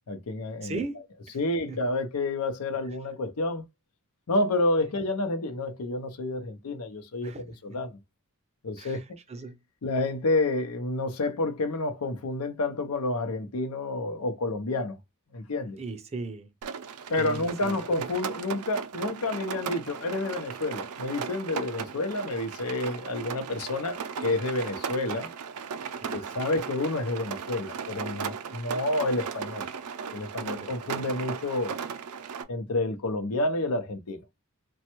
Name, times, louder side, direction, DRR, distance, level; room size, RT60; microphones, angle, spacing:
voice 1, 0.1-0.8 1.3-3.6 4.3-8.0 8.6-9.0 9.8-15.0 15.3-15.8 17.1-25.3 26.1-29.7 30.1-31.8 32.5-34.2, left 2 dB, 85° left, 0.6 m, -29 dB
voice 2, 0.6-1.0 1.7-1.8 4.8-5.0 7.2-7.8 8.8-9.6 15.8-16.5 17.2-17.8 26.0-26.3 30.4-31.1, right 3 dB, 30° right, 0.5 m, -38 dB
Rain, 16.6-32.4, right 6 dB, 85° right, 0.4 m, -37 dB
3.1 x 2.2 x 2.9 m
head